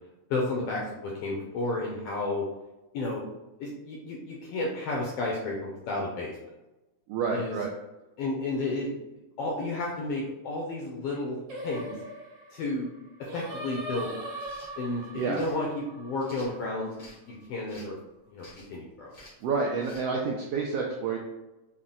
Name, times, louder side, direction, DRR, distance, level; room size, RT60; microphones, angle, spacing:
voice 1, 0.3-2.4 2.9-3.2 3.6-6.3 7.3-7.6 8.2-8.9 9.4-12.0 12.5-12.9 13.2-14.2 14.8-16.9 17.3-18.0 18.3-19.1, left 2 dB, 80° left, -2 dB, 1.4 m, -32 dB
voice 2, 7.1-7.7 15.1-15.4 19.4-21.2, right 5 dB, 85° right, -1 dB, 1.4 m, -29 dB
Singing, 11.5-16.8, right 1 dB, 55° right, 1.4 m, -40 dB
sound 1, 14.3-14.7 15.3-15.6 16.2-17.2 17.7-18.0 18.4-18.8 19.1-19.4 19.8-20.0, left 1 dB, 60° left, 0.5 m, -51 dB
5.5 x 2.1 x 3.7 m, 1.0 s
omnidirectional pair, 3.3 m